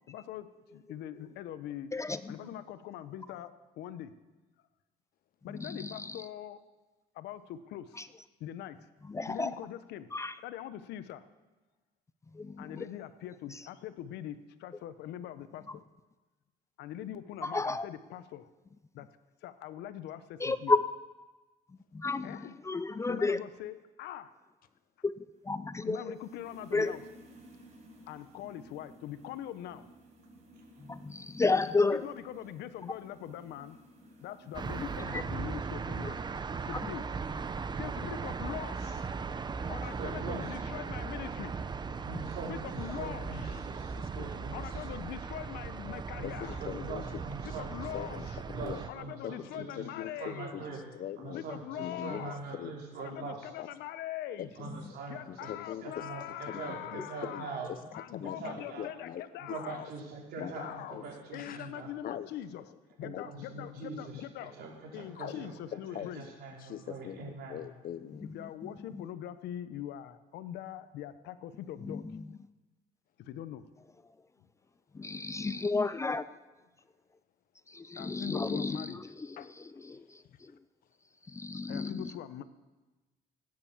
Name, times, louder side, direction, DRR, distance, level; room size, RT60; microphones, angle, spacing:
voice 1, 0.1-1.9 2.3-4.1 5.4-6.6 7.1-8.0 8.4-8.8 9.3-10.1 10.4-11.2 12.6-15.8 16.8-18.5 18.9-19.1 19.4-20.7 22.2-22.5 23.1-24.3 25.8-27.0 28.1-29.8 31.9-33.8 34.2-36.2 36.6-37.1 37.8-39.1 39.7-41.6 42.5-43.6 44.5-46.6 47.4-48.2 48.9-50.6 51.3-52.4 53.0-54.5 55.1-57.6 57.9-59.9 60.4-61.1 61.3-64.5 64.9-66.3 68.3-72.1 73.2-73.6 77.9-79.0 81.7-82.4, left 11 dB, 80° left, 12 dB, 1.0 m, -42 dB
voice 2, 1.9-2.5 5.5-6.3 7.9-8.1 9.1-9.6 10.1-10.4 12.3-12.9 13.5-13.6 15.7-15.8 17.4-17.9 20.4-20.8 21.9-23.4 25.0-26.1 26.7-26.9 30.8-32.1 34.8-35.2 36.0-36.1 68.2-68.3 68.9-69.1 71.8-72.3 74.9-76.3 77.7-80.1 81.3-82.1, left 3 dB, 15° left, 14 dB, 0.5 m, -32 dB
sound 1, 25.3-35.0, equal, 40° right, 5.1 m, -56 dB
sound 2, 34.5-48.9, right 5 dB, 25° right, 0.7 m, -38 dB
voice 3, 40.0-40.5 42.0-44.9 46.1-47.7 48.5-49.9 50.2-50.8 51.2-53.5 54.5-55.5 55.8-57.7 58.2-58.9 59.5-61.9 63.0-65.6 65.9-67.7, right 4 dB, 70° right, -2 dB, 4.8 m, -43 dB
voice 4, 44.0-44.3 44.6-44.7 46.2-47.0 47.5-47.6 47.9-48.8 49.2-51.4 51.8-52.7 53.6-53.7 54.4-54.7 55.3-56.1 56.5-57.8 58.1-59.8 60.4-60.5 60.9-61.0 61.3-61.7 62.0-62.3 63.0-63.2 63.5-63.7 65.1-65.4 65.7-66.1 66.6-68.2 79.4-79.5, left 10 dB, 60° left, 13 dB, 0.9 m, -42 dB
17.5 x 9.7 x 7.3 m, 1.2 s
cardioid pair, 110°, 17 cm